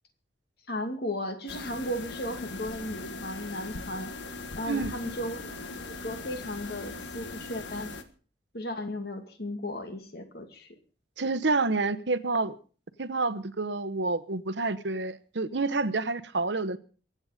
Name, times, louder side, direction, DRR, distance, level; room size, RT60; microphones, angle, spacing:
voice 1, 0.7-4.1 4.6-5.5 5.9-7.9 8.5-10.7, left 1 dB, 55° left, 2.4 m, -35 dB
sound 1, 1.5-8.0, left 3 dB, 75° left, 1.7 m, -40 dB
voice 2, 11.2-12.6 13.0-16.8, right 3 dB, 70° right, 1.0 m, -28 dB
23.0 x 8.9 x 5.1 m
head